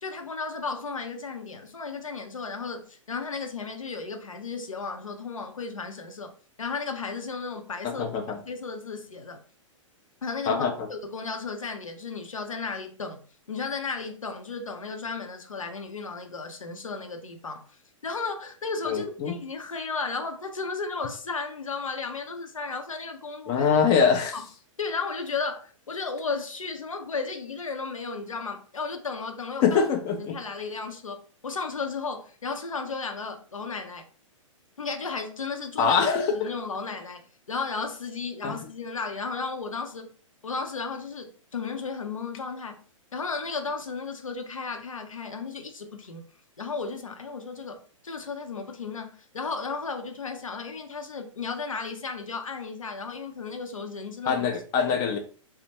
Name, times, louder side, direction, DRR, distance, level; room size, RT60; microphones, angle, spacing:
voice 1, 0.0-6.3 6.6-8.0 8.5-9.4 10.2-13.2 13.5-23.7 24.3-24.4 24.8-29.8 30.2-34.0 34.8-36.0 36.3-40.1 40.4-42.8 43.1-46.2 46.6-54.5 54.8-54.9, left 4 dB, 80° left, 0.6 m, -34 dB
voice 2, 7.8-8.4 10.5-10.7 18.9-19.4 23.5-24.4 29.6-30.4 35.8-36.5 38.4-38.5 54.3-55.2, left 6 dB, 25° left, 0.4 m, -23 dB
3.3 x 2.1 x 2.8 m
figure-of-eight pair, 110°, 17 cm